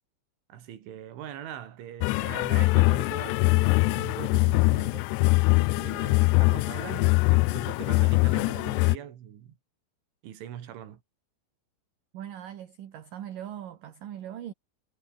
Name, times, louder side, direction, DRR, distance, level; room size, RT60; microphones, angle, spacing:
voice 1, 0.5-5.1 5.5-9.6 10.2-11.0, right 10 dB, 80° right, 4.9 m, -42 dB
sound 1, 2.0-9.0, left 23 dB, 90° left, 2.4 m, -23 dB
voice 2, 12.1-14.5, right 10 dB, 55° right, 2.8 m, -40 dB
omnidirectional pair, 5.5 m